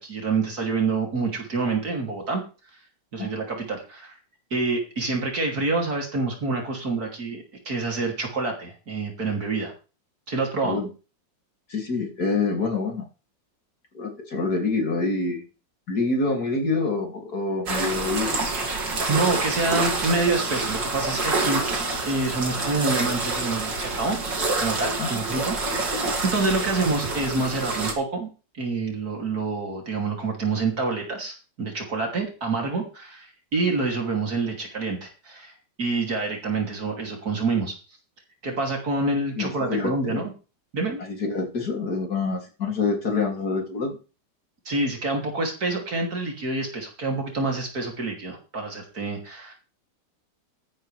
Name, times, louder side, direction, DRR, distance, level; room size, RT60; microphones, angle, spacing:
voice 1, 0.0-2.4 3.1-4.1 4.5-9.7 10.3-10.8 19.1-21.6 22.1-24.2 24.6-28.3 28.6-35.5 35.8-37.7 38.4-40.3 40.7-41.0 44.6-49.5, right 3 dB, 55° right, 1 dB, 3.4 m, -27 dB
voice 2, 11.7-13.1 13.9-15.5 15.9-18.4 25.0-25.2 39.4-40.3 41.0-44.0, left 3 dB, 55° left, 2 dB, 3.3 m, -26 dB
sound 1, 17.7-27.9, right 3 dB, 75° right, 3.3 m, -27 dB
14.0 x 11.0 x 3.4 m, 0.34 s
omnidirectional pair, 2.0 m